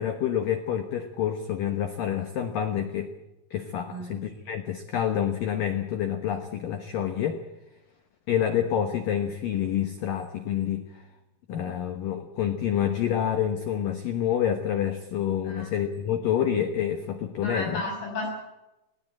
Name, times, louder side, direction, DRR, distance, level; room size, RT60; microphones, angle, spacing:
voice 1, 0.0-3.1 3.5-7.4 8.3-11.0 11.5-17.8, left 9 dB, 85° left, 8 dB, 1.9 m, -28 dB
voice 2, 17.4-18.3, left 2 dB, 60° left, 1 dB, 8.7 m, -33 dB
20.5 x 18.0 x 8.8 m, 0.95 s
omnidirectional pair, 5.9 m